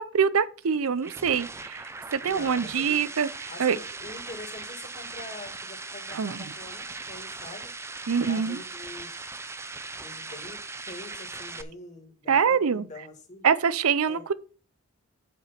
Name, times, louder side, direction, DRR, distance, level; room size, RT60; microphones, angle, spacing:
voice 1, 0.0-1.8 2.1-3.3 3.6-3.8 6.1-6.4 8.1-8.6 12.3-12.8 13.4-14.3, right 6 dB, 75° right, 0.5 m, -24 dB
sound 1, 0.7-11.6, right 3 dB, 10° right, 0.5 m, -39 dB
voice 2, 2.2-3.1 3.5-7.7 8.2-9.3 10.0-13.5 14.1-14.2, left 2 dB, 35° left, 2.0 m, -44 dB
7.8 x 5.0 x 5.7 m
head